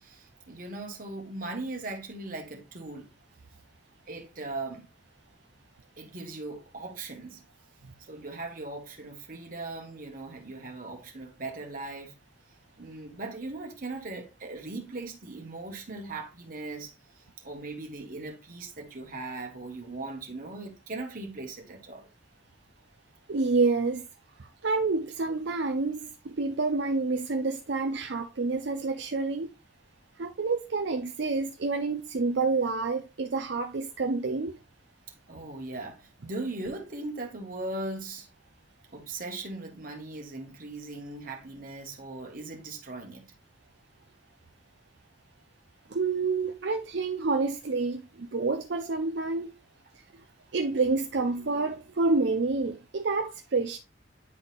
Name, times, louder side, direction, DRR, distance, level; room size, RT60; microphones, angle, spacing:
voice 1, 0.0-3.1 4.1-4.9 6.0-7.4 8.1-12.2 12.8-16.9 17.4-22.1 35.3-38.3 38.9-43.3, right 2 dB, 45° right, 1.5 m, -39 dB
voice 2, 23.3-24.1 24.4-29.5 30.2-34.6 45.9-49.5 50.5-53.8, right 3 dB, 65° right, 0.5 m, -28 dB
9.8 x 4.0 x 2.5 m
head